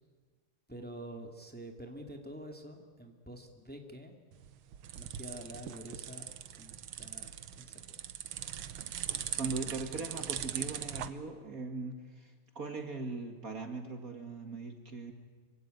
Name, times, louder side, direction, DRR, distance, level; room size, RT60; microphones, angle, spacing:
voice 1, 0.7-4.1 4.9-8.1, right 1 dB, 5° left, 3 dB, 2.4 m, -47 dB
sound 1, 4.3-11.1, right 10 dB, 90° right, 1.9 m, -40 dB
voice 2, 9.4-15.1, right 3 dB, 45° right, 5 dB, 2.3 m, -40 dB
26.0 x 24.0 x 9.4 m, 1.5 s
omnidirectional pair, 2.3 m